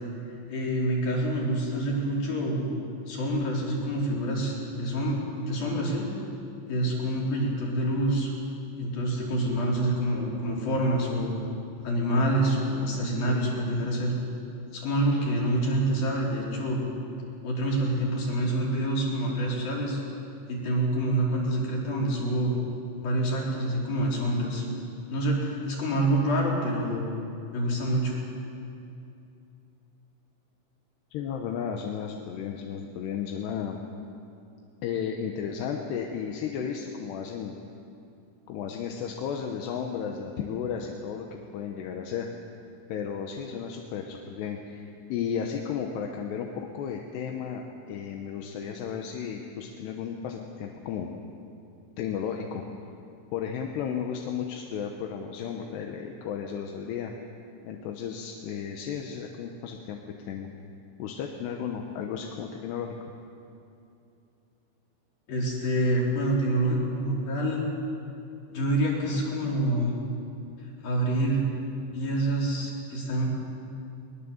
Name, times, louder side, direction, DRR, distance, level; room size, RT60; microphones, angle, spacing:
voice 1, 0.5-2.7 3.1-6.1 6.7-8.3 8.8-11.3 11.8-14.2 14.7-16.8 17.4-20.0 20.5-22.6 23.0-24.7 25.1-27.1 27.5-28.2 65.3-67.6 68.5-69.9 70.8-71.4 71.9-73.3, right 1 dB, 50° left, -3 dB, 5.5 m, -27 dB
voice 2, 31.1-33.8 34.8-37.6 38.5-42.3 42.9-51.1 52.0-52.6 53.3-57.1 57.6-60.5 61.0-63.0, left 7 dB, 70° left, 2 dB, 2.9 m, -34 dB
22.0 x 20.5 x 7.2 m, 2.7 s
omnidirectional pair, 5.6 m